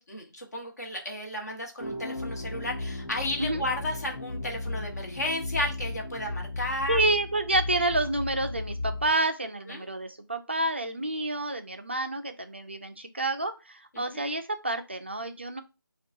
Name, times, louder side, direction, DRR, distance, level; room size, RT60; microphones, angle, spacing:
voice 1, 0.0-7.0 9.7-9.8 13.9-14.2, left 1 dB, 45° left, 1 dB, 1.2 m, -33 dB
sound 1, 1.8-9.1, left 2 dB, 90° left, 1.1 m, -35 dB
voice 2, 6.9-15.6, right 2 dB, 30° right, 7 dB, 0.4 m, -29 dB
5.3 x 2.3 x 2.6 m, 0.28 s
figure-of-eight pair, 165°, 12 cm